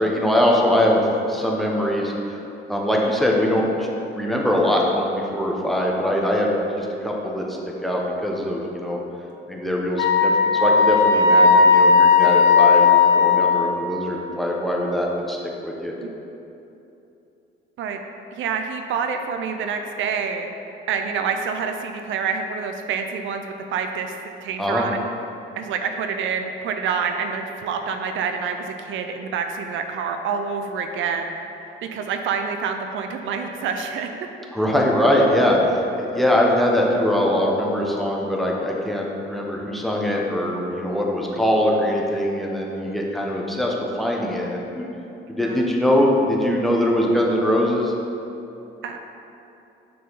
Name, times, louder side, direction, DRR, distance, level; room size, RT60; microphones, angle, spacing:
voice 1, 0.0-2.4 2.7-9.0 9.5-15.4 15.6-15.9 24.6-24.9 34.5-44.9 45.3-47.9, left 1 dB, ahead, -2 dB, 0.9 m, -22 dB
Wind instrument woodwind instrument, 10.0-13.8, left 5 dB, 80° left, 0.7 m, -15 dB
voice 2, 18.3-20.5 20.9-24.2 24.4-25.0 25.6-31.4 31.9-34.1 45.4-45.6 48.8-49.0, right 6 dB, 75° right, 5 dB, 0.5 m, -27 dB
6.2 x 4.6 x 4.0 m, 2.9 s
cardioid pair, 90°, 20 cm